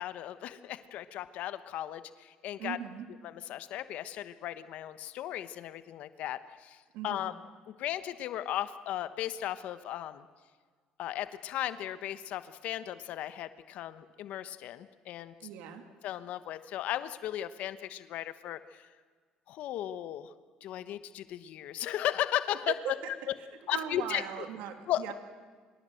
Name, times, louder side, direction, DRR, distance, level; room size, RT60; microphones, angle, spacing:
voice 1, 0.0-2.8 3.2-7.3 7.8-10.2 11.0-15.3 16.0-18.9 19.5-20.3 20.6-22.9 23.7-24.2 24.9-25.1, left 12 dB, 70° left, 13 dB, 1.1 m, -36 dB
voice 2, 2.6-3.1 6.9-7.3 15.4-15.8 22.7-22.9 23.2-23.3 23.7-25.1, right 10 dB, 85° right, 6 dB, 2.9 m, -39 dB
24.5 x 22.5 x 7.8 m, 1.5 s
cardioid pair, 95°, 3 cm